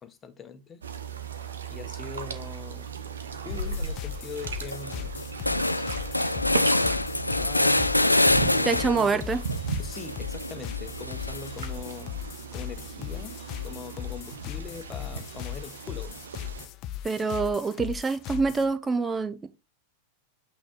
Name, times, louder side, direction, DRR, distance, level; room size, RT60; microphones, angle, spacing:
voice 1, 0.0-0.8 1.7-2.9 3.4-5.1 7.4-7.8 8.3-9.5 9.8-12.1 12.5-13.4 13.6-16.2, left 6 dB, 20° left, 1.1 m, -41 dB
sound 1, 0.8-16.7, right 7 dB, 70° right, 1.0 m, -37 dB
sound 2, 3.5-4.0 4.4-4.5 4.7-9.1 9.5-11.6, left 2 dB, 85° left, 0.4 m, -26 dB
sound 3, 3.5-18.7, left 11 dB, 40° left, 0.6 m, -38 dB
voice 2, 8.7-9.4 17.0-19.5, right 4 dB, 15° right, 0.8 m, -26 dB
8.6 x 3.0 x 3.9 m
figure-of-eight pair, 90°, 0 cm